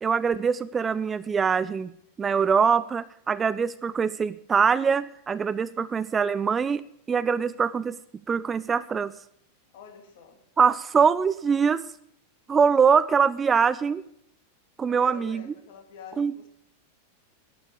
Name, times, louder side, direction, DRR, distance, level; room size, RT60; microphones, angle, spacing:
voice 1, 0.0-1.9 2.2-6.8 7.1-8.0 8.3-9.1 10.6-11.8 12.5-14.0 14.8-15.4 16.2-16.5, right 6 dB, 20° right, 17 dB, 0.4 m, -23 dB
voice 2, 9.7-10.4 14.9-16.5, left 6 dB, 50° left, 4 dB, 2.6 m, -46 dB
12.0 x 11.0 x 6.8 m, 0.72 s
figure-of-eight pair, 90°, 0 cm